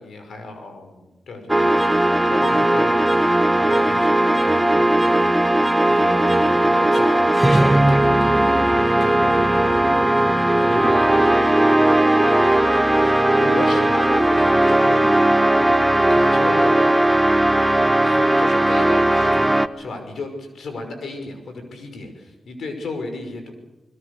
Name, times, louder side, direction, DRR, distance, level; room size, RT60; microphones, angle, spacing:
voice 1, 0.0-2.9 3.6-5.6 5.9-9.9 10.5-11.4 12.2-12.7 13.0-13.1 13.4-15.1 15.6-17.1 18.0-23.5, left 3 dB, 85° left, 6 dB, 5.6 m, -34 dB
sound 1, 1.5-19.7, right 1 dB, 15° right, 1.2 m, -17 dB
27.5 x 21.0 x 6.8 m, 1.0 s
cardioid pair, 65°, 0 cm